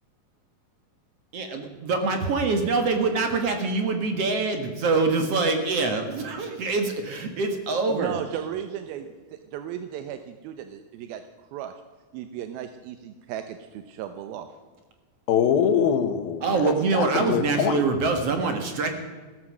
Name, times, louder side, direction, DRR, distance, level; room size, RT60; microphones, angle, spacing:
voice 1, 1.3-8.2 16.4-18.9, right 3 dB, 55° right, 6 dB, 2.0 m, -25 dB
voice 2, 7.9-11.2 11.5-11.8 12.1-14.5, right 10 dB, 85° right, 9 dB, 2.7 m, -35 dB
voice 3, 15.3-17.8, left 8 dB, 80° left, 10 dB, 2.8 m, -24 dB
15.5 x 13.5 x 6.2 m, 1.4 s
omnidirectional pair, 4.2 m